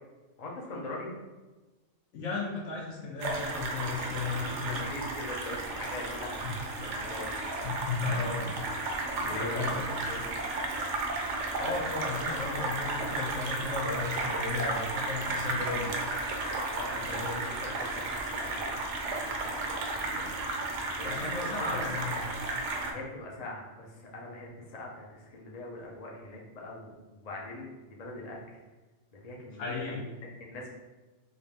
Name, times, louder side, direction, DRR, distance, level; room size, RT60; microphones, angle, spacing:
voice 1, 0.4-1.1 4.3-4.5 4.9-7.9 9.1-10.7 16.7-20.3 20.9-21.9 22.8-28.6 29.1-29.7 30.0-30.7, left 2 dB, 40° left, -2 dB, 0.7 m, -42 dB
voice 2, 2.1-4.8 6.4-6.6 7.6-8.5 9.2-9.8 11.6-15.9 17.0-17.5 21.1-22.2 29.6-30.0, left 3 dB, 85° left, -3 dB, 1.3 m, -35 dB
sound 1, 3.2-22.9, right 2 dB, 75° right, 0.9 m, -34 dB
3.6 x 2.7 x 3.4 m, 1.2 s
omnidirectional pair, 1.2 m